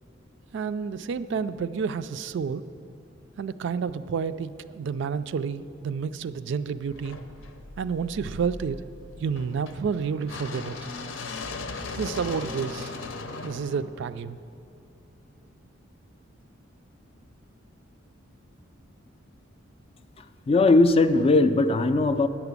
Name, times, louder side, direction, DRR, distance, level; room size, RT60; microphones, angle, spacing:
voice 1, 0.5-2.6 3.4-7.2 7.8-8.8 9.2-10.9 11.9-12.9 13.4-14.4, right 6 dB, 60° right, 13 dB, 0.3 m, -30 dB
sound 1, 6.9-14.9, left 3 dB, 75° left, 0.7 m, -38 dB
voice 2, 20.5-22.3, left 2 dB, 30° left, 10 dB, 0.3 m, -19 dB
8.7 x 5.9 x 8.1 m, 2.7 s
head